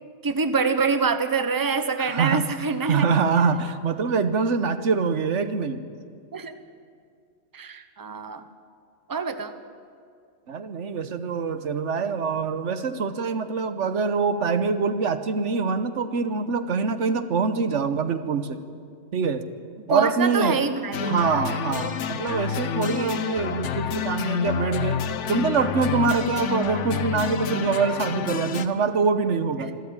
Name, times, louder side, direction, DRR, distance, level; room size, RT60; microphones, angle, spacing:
voice 1, 0.2-3.1 6.3-6.6 7.5-8.4 9.1-9.5 19.9-21.3 29.6-29.7, right 5 dB, 20° right, 9 dB, 0.9 m, -25 dB
voice 2, 2.0-2.4 2.8-5.8 10.5-18.6 19.1-19.4 19.9-20.6 21.0-25.0 25.3-29.7, right 5 dB, 80° right, 10 dB, 1.3 m, -24 dB
sound 1, 20.9-28.7, left 7 dB, 80° left, 1.2 m, -28 dB
26.0 x 13.0 x 8.8 m, 2.2 s
omnidirectional pair, 1.2 m